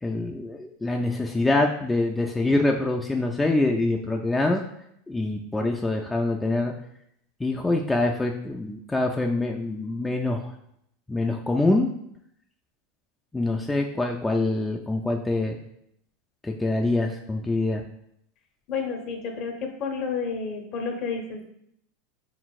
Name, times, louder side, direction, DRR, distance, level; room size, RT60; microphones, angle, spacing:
voice 1, 0.0-4.6 5.1-6.7 7.4-10.5 11.1-11.9 13.3-15.6 16.4-17.8, left 2 dB, 10° left, 1 dB, 0.4 m, -25 dB
voice 2, 18.7-21.5, left 5 dB, 50° left, 3 dB, 0.8 m, -30 dB
4.0 x 3.9 x 2.4 m, 0.74 s
hypercardioid pair, 95°, 0 cm